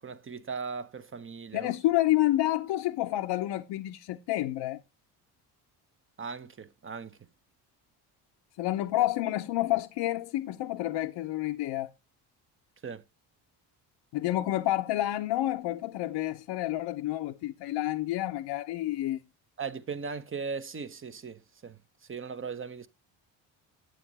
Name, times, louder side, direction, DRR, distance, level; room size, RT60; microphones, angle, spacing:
voice 1, 0.0-1.7 6.2-7.1 12.8-13.0 19.6-21.8 22.1-22.9, right 5 dB, 25° right, 1.0 m, -38 dB
voice 2, 1.5-4.8 8.6-11.9 14.1-19.2, left 15 dB, 65° left, 0.8 m, -29 dB
9.2 x 7.7 x 4.1 m
supercardioid pair, 70°, 47 cm